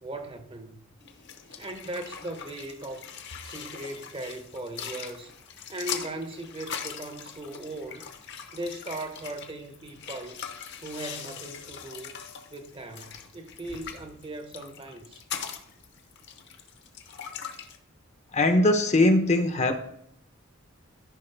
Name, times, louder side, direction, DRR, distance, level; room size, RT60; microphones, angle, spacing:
voice 1, 0.0-0.8 1.6-3.1 3.4-5.3 5.7-8.1 8.5-10.4 10.8-12.2 12.5-15.2, right 2 dB, 25° right, 0.7 m, -38 dB
sound 1, 1.0-17.8, left 7 dB, 55° left, 0.9 m, -41 dB
voice 2, 18.3-19.8, left 1 dB, 35° left, 0.7 m, -21 dB
13.5 x 5.4 x 3.3 m
head